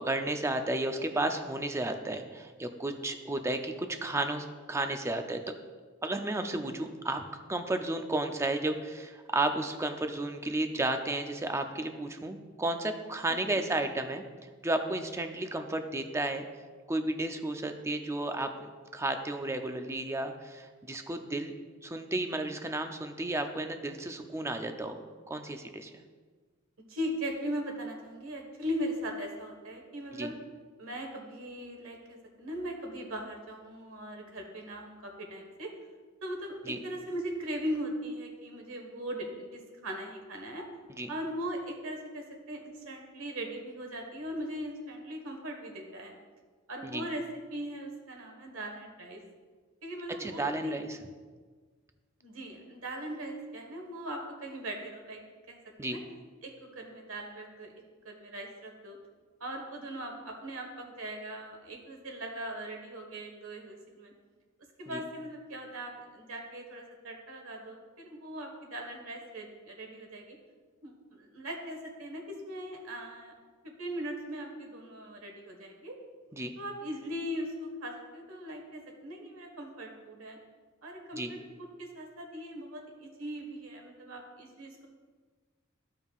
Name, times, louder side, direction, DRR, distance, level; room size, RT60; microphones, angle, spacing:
voice 1, 0.0-5.5 6.0-14.2 14.6-16.5 16.9-21.5 21.8-25.0 25.3-26.0 30.2-30.3 36.7-36.8 41.0-41.1 46.8-47.0 50.2-50.9 55.8-56.0 64.9-65.0 76.3-76.5 81.2-81.3, right 2 dB, 15° right, 6 dB, 0.5 m, -33 dB
voice 2, 13.3-13.6 26.9-30.3 30.8-35.7 36.2-40.7 41.1-46.1 46.7-47.2 47.5-49.2 49.8-50.8 52.2-56.0 56.4-57.7 58.0-59.0 59.4-64.1 64.8-70.4 70.8-73.3 73.6-76.0 76.5-80.4 80.8-84.9, equal, 75° right, 2 dB, 1.5 m, -39 dB
14.0 x 5.4 x 2.4 m, 1.5 s
head